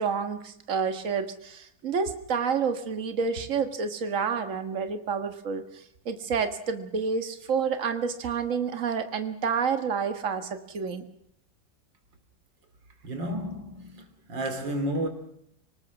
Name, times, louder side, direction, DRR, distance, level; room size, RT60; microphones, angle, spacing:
voice 1, 0.0-11.1, right 6 dB, 45° right, 1.8 m, -29 dB
voice 2, 13.0-15.1, right 1 dB, 90° right, 3.6 m, -31 dB
25.0 x 19.0 x 6.1 m
omnidirectional pair, 2.0 m